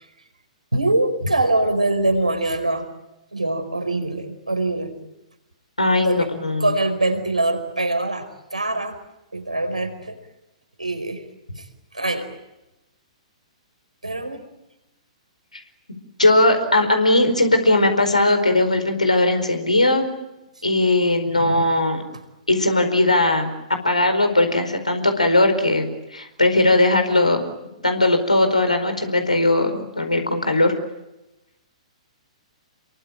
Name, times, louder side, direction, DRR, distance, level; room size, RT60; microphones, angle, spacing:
voice 1, 0.7-2.9 3.3-4.9 6.0-6.3 6.6-9.0 9.3-10.2 10.8-11.2 11.6-11.7 11.9-12.4 14.0-14.5, right 2 dB, 85° right, 6 dB, 4.9 m, -23 dB
voice 2, 5.8-6.7 16.2-20.1 20.6-22.0 22.5-27.4 27.8-30.7, left 2 dB, 85° left, 6 dB, 4.6 m, -19 dB
28.5 x 23.0 x 9.0 m, 0.95 s
figure-of-eight pair, 115°, 4 cm